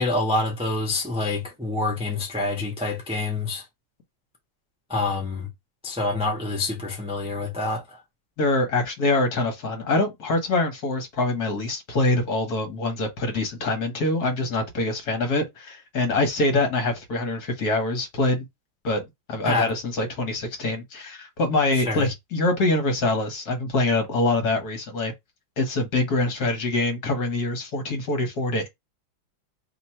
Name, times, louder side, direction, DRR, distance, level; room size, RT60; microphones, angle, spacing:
voice 1, 0.0-3.6 4.9-5.5 5.8-8.0 19.4-19.7 21.7-22.1, left 2 dB, 5° right, 0.4 m, -27 dB
voice 2, 8.4-18.4 18.8-19.0 19.3-25.1 25.6-28.7, left 2 dB, 55° left, 1.7 m, -24 dB
3.2 x 3.0 x 4.3 m
omnidirectional pair, 2.1 m